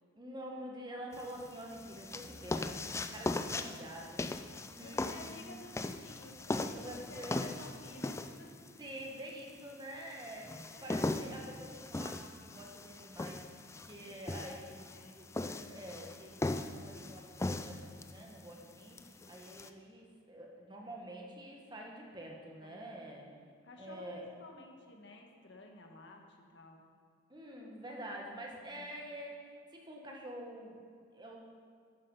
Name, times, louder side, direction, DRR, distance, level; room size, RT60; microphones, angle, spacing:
voice 1, 0.2-4.2 4.8-5.5 6.7-7.5 8.8-14.9 15.1-23.3 23.8-24.3 27.3-30.8 31.1-31.4, right 1 dB, 20° right, -1 dB, 1.4 m, -47 dB
sound 1, 1.1-19.7, left 2 dB, 15° left, 0.3 m, -40 dB
voice 2, 4.8-8.5 10.7-11.0 13.9-15.2 22.6-23.3 23.6-26.8 28.7-28.9, left 1 dB, 60° left, 2 dB, 1.5 m, -53 dB
10.5 x 9.5 x 5.5 m, 2.2 s
head